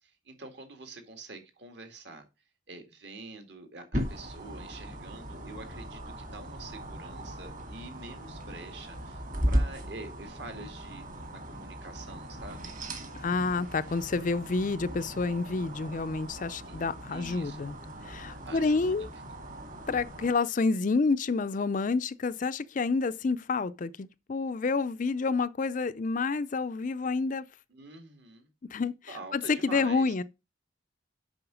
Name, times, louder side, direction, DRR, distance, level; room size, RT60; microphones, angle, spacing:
voice 1, 0.0-2.2 2.7-9.2 9.5-12.7 16.7-16.8 17.1-17.6 18.2-19.1 27.7-28.5 29.1-30.1, right 2 dB, 55° right, 2.0 m, -46 dB
sound 1, 3.9-20.3, equal, 40° right, 2.2 m, -37 dB
voice 2, 13.2-17.8 18.0-19.1 19.9-27.5 28.7-30.2, left 4 dB, 40° left, 0.4 m, -29 dB
7.8 x 5.6 x 6.2 m
head